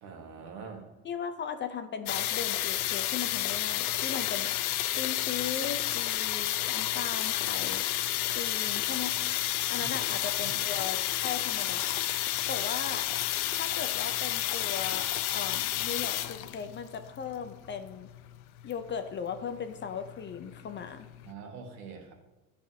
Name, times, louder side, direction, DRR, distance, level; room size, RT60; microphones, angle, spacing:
voice 1, 0.0-0.8 9.8-10.0 10.4-10.6 21.2-22.1, right 5 dB, 70° right, 2 dB, 1.5 m, -44 dB
voice 2, 1.0-4.6 5.0-7.9 8.4-9.3 9.7-12.0 12.5-13.1 13.5-18.1 18.6-21.1, left 7 dB, 30° left, 8 dB, 0.5 m, -38 dB
sound 1, 2.1-21.3, left 13 dB, 90° left, 0.5 m, -31 dB
10.0 x 5.0 x 2.7 m, 1.1 s
supercardioid pair, 95°, 42 cm